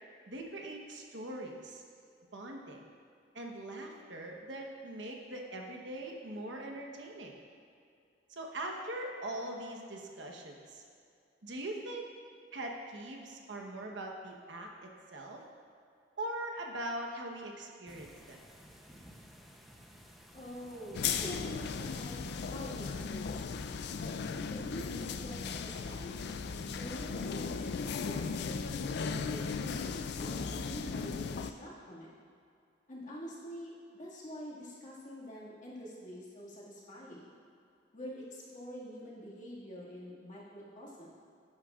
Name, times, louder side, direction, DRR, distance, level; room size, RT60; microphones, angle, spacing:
voice 1, 0.3-1.8 2.3-2.8 3.3-7.4 8.3-10.8 11.4-12.1 12.5-15.4 16.2-18.4, right 1 dB, 75° right, 1 dB, 1.1 m, -41 dB
sound 1, 17.9-23.0, equal, ahead, 0.7 m, -53 dB
voice 2, 20.3-23.7 24.5-26.0 26.7-28.7 29.0-32.1 32.9-37.3 37.9-41.2, equal, 45° left, -6 dB, 2.0 m, -46 dB
sound 2, 20.9-31.5, left 5 dB, 60° left, 0.4 m, -37 dB
11.0 x 9.6 x 2.4 m, 2.4 s
head